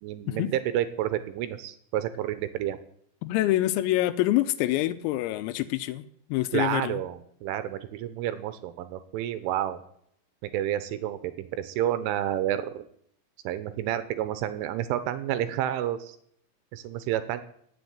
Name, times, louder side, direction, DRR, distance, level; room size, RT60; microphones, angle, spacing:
voice 1, 0.0-2.8 6.5-9.8 10.4-12.8 13.4-16.2 16.7-17.4, right 12 dB, 75° right, 3.2 m, -30 dB
voice 2, 3.2-7.0, left 15 dB, 90° left, 3.6 m, -26 dB
16.0 x 7.1 x 9.6 m
omnidirectional pair, 6.0 m